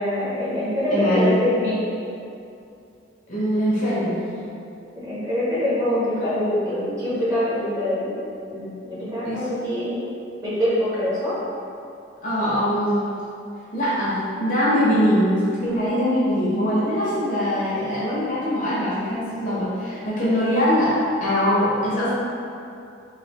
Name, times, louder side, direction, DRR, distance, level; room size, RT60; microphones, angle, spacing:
voice 1, 0.0-1.8 5.0-8.1 8.5-10.0 10.4-11.4, left 1 dB, 15° right, -10 dB, 0.7 m, -24 dB
voice 2, 0.9-1.4 3.3-4.2 9.2-9.5 12.2-13.1 13.7-22.1, equal, 40° left, -8 dB, 0.7 m, -22 dB
3.1 x 2.6 x 2.9 m, 2.6 s
head